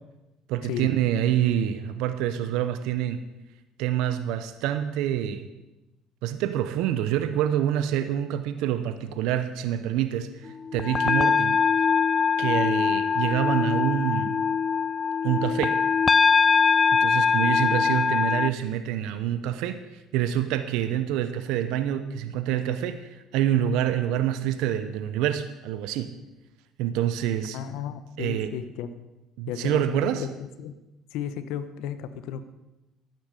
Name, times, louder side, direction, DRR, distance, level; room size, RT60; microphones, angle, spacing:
voice 1, 0.5-3.2 3.8-5.5 6.2-11.6 12.4-14.4 15.2-15.8 17.0-19.8 20.1-26.1 26.8-27.6 28.2-28.5 29.4-30.2, right 11 dB, 80° right, 10 dB, 0.8 m, -26 dB
sound 1, 10.7-18.5, left 6 dB, 30° left, 0.4 m, -22 dB
voice 2, 27.5-28.9 29.5-30.3 30.6-30.8 31.1-32.4, left 9 dB, 80° left, 12 dB, 1.0 m, -34 dB
12.0 x 9.3 x 6.6 m, 1.0 s
supercardioid pair, 95°, 0 cm